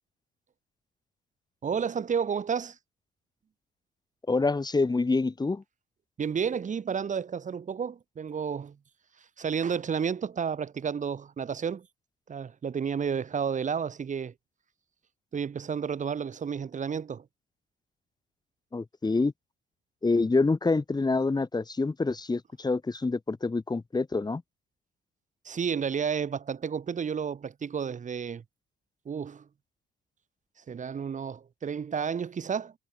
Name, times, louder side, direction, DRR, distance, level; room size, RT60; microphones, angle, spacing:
voice 1, 1.6-2.8 6.2-8.8 9.4-11.9 12.3-14.3 15.3-17.2 25.4-28.4 29.0-29.4 30.7-32.7, right 6 dB, 40° right, 6.4 m, -31 dB
voice 2, 4.3-5.6 18.7-19.3 20.0-24.4, left 3 dB, 20° left, 6.2 m, -26 dB
supercardioid pair, 75°, 19 cm